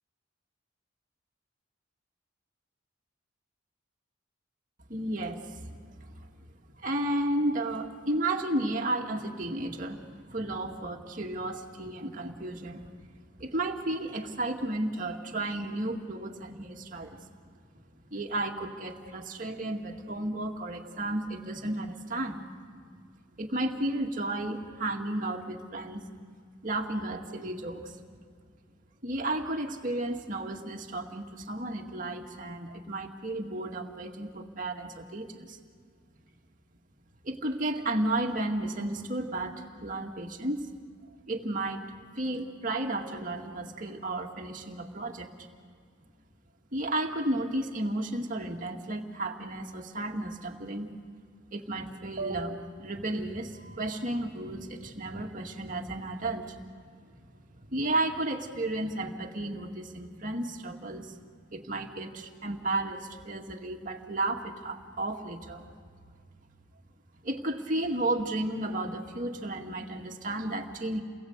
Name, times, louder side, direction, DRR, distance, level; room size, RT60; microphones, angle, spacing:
voice 1, 4.9-6.1 6.8-12.9 13.4-17.2 18.1-22.4 23.4-26.0 26.6-28.0 29.0-35.6 37.2-40.7 41.3-41.8 42.2-45.3 46.7-50.9 51.5-56.6 57.5-61.2 61.5-65.6 67.2-71.0, right 1 dB, 40° right, 1 dB, 2.1 m, -33 dB
29.5 x 21.0 x 8.0 m, 2.1 s
head